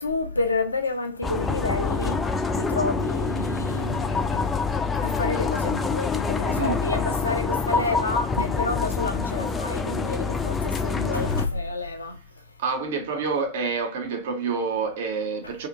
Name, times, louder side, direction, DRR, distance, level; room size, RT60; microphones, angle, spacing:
voice 1, 0.0-2.2 2.5-4.5 5.0-12.2, left 3 dB, 80° left, 0.4 m, -29 dB
sound 1, 1.2-11.5, left 4 dB, 15° left, 0.3 m, -26 dB
voice 2, 12.6-15.7, right 5 dB, 55° right, 0.5 m, -28 dB
2.6 x 2.4 x 2.4 m
figure-of-eight pair, 90°, 0 cm